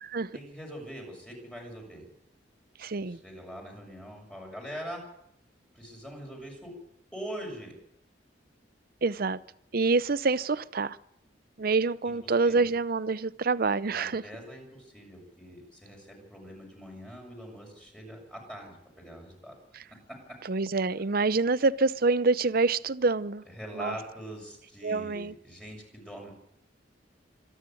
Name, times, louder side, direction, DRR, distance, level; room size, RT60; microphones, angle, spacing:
voice 1, 0.3-2.1 2.8-5.0 5.7-6.7 7.1-7.7 12.0-12.1 12.4-12.7 13.9-19.5 23.4-26.3, equal, 5° left, 0 dB, 6.8 m, -43 dB
voice 2, 2.8-3.2 9.0-9.4 9.7-11.0 11.6-14.2 20.4-23.4 23.8-24.0 24.8-25.3, right 3 dB, 55° right, 17 dB, 0.7 m, -26 dB
25.5 x 11.0 x 9.2 m, 0.78 s
head